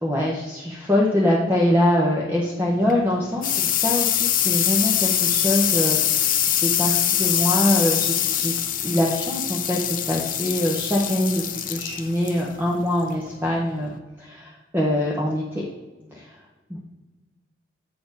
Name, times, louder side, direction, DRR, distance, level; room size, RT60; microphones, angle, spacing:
voice 1, 0.0-8.5 8.8-9.8 10.1-13.9 14.2-15.6 16.1-16.3 16.7-16.8, left 1 dB, 10° right, -2 dB, 0.7 m, -23 dB
sound 1, 2.7-14.0, left 10 dB, 45° left, 0.6 m, -24 dB
8.3 x 4.2 x 5.2 m, 1.2 s
head